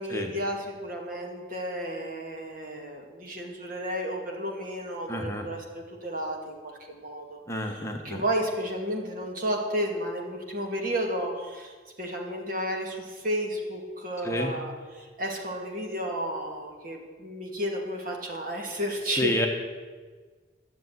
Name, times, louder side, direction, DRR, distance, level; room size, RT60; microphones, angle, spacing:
voice 1, 0.0-7.4 7.7-19.4, equal, 50° right, 1 dB, 2.3 m, -32 dB
voice 2, 5.1-5.5 7.5-8.2 14.2-14.5 19.2-19.5, left 1 dB, 15° left, 2 dB, 1.1 m, -29 dB
13.0 x 7.1 x 9.4 m, 1.4 s
head